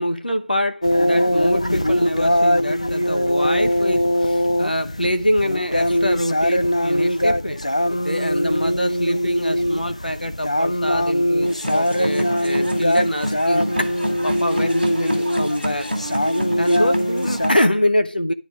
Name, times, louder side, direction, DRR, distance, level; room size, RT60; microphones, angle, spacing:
voice 1, 0.0-15.9 16.6-18.3, left 1 dB, 60° left, 0.9 m, -24 dB
sound 1, 0.8-17.5, equal, 40° left, 0.4 m, -21 dB
sound 2, 11.4-17.5, equal, ahead, 0.9 m, -28 dB
10.5 x 4.6 x 5.1 m
figure-of-eight pair, 175°, 5 cm